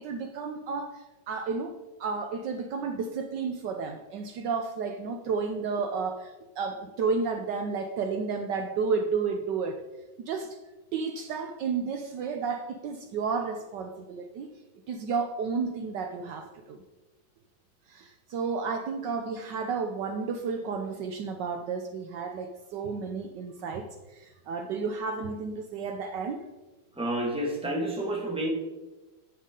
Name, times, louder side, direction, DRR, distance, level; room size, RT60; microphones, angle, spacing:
voice 1, 0.0-9.8 10.2-10.6 10.9-14.5 14.9-16.8 17.9-26.5, right 5 dB, 70° right, 6 dB, 1.2 m, -32 dB
voice 2, 26.9-28.5, right 1 dB, 5° right, -1 dB, 1.4 m, -29 dB
10.5 x 8.2 x 3.7 m, 1.1 s
omnidirectional pair, 2.1 m